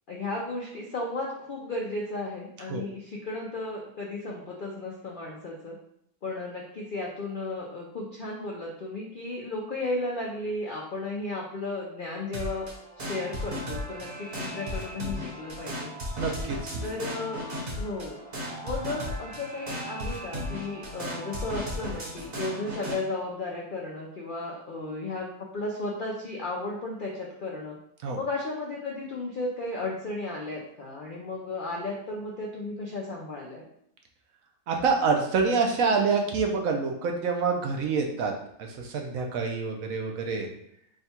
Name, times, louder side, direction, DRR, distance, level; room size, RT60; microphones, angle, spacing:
voice 1, 0.1-5.8 6.2-12.7 13.0-15.9 16.8-17.4 17.8-18.2 18.6-25.3 25.5-27.8 28.2-33.6, left 2 dB, 65° left, -2 dB, 0.5 m, -34 dB
sound 1, 12.3-23.0, left 1 dB, 45° right, 1.0 m, -35 dB
voice 2, 16.2-16.8 28.0-28.2 34.7-38.3 38.6-40.5, right 4 dB, 70° right, 2 dB, 1.0 m, -27 dB
3.6 x 2.3 x 4.2 m, 0.72 s
omnidirectional pair, 1.6 m